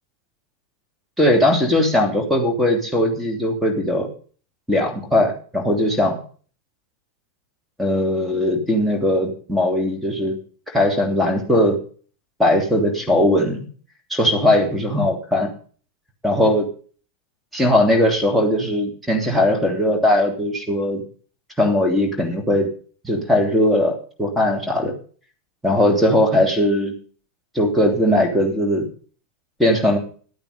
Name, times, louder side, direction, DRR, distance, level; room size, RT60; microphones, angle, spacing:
voice 1, 1.2-4.1 4.7-6.2 7.8-10.4 10.7-11.8 12.4-13.6 14.1-15.5 16.2-16.7 17.5-21.0 21.6-22.7 23.0-24.9 25.6-26.9 27.5-28.8 29.6-30.0, left 1 dB, 5° right, 3 dB, 3.0 m, -19 dB
12.5 x 9.0 x 5.3 m, 0.42 s
figure-of-eight pair, 90°, 0 cm